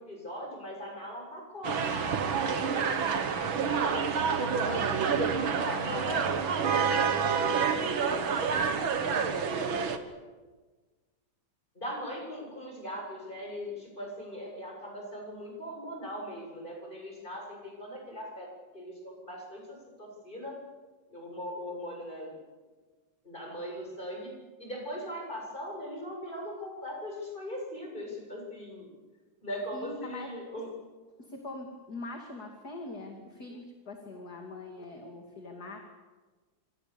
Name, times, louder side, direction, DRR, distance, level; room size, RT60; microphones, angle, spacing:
voice 1, 0.0-2.7 3.8-6.8 7.3-10.0 11.8-18.5 18.7-20.6 21.1-22.3 23.2-24.3 24.6-28.9 29.4-30.7, equal, 20° left, 0 dB, 7.6 m, -40 dB
sound 1, 1.6-10.0, right 6 dB, 70° right, 2.4 m, -28 dB
voice 2, 29.7-30.3 31.2-35.8, left 2 dB, 45° left, 2 dB, 3.1 m, -42 dB
27.0 x 26.5 x 7.0 m, 1.3 s
omnidirectional pair, 2.3 m